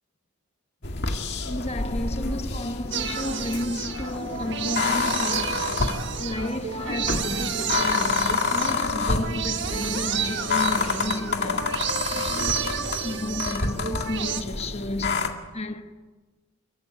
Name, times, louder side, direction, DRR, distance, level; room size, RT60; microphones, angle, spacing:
sound 1, 0.8-15.3, left 3 dB, 50° left, 2.0 m, -28 dB
sound 2, 1.4-6.9, left 2 dB, 80° left, 5.1 m, -44 dB
voice 1, 1.4-16.0, left 1 dB, 30° left, 1.2 m, -32 dB
sound 3, 2.9-14.4, right 7 dB, 55° right, 1.5 m, -31 dB
30.0 x 14.5 x 9.1 m
head